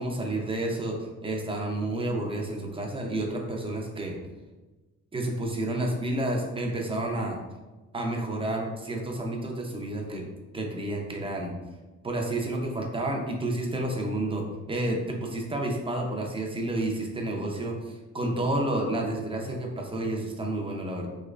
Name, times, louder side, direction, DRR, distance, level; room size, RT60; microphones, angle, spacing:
voice 1, 0.0-4.2 5.1-7.4 7.9-10.2 10.5-11.5 12.0-21.1, right 1 dB, 20° right, 0 dB, 0.6 m, -30 dB
3.3 x 2.9 x 2.4 m, 1.2 s
cardioid pair, 90°, 30 cm